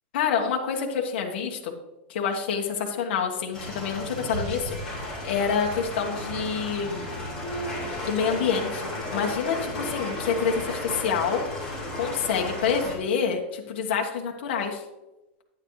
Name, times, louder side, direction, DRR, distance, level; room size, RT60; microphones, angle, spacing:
voice 1, 0.1-1.7 2.1-7.0 7.8-14.8, left 6 dB, 55° left, 1 dB, 1.3 m, -27 dB
sound 1, 3.5-12.9, left 1 dB, 10° left, 3.4 m, -33 dB
9.6 x 9.5 x 3.2 m, 1.0 s
supercardioid pair, 175°, 6 cm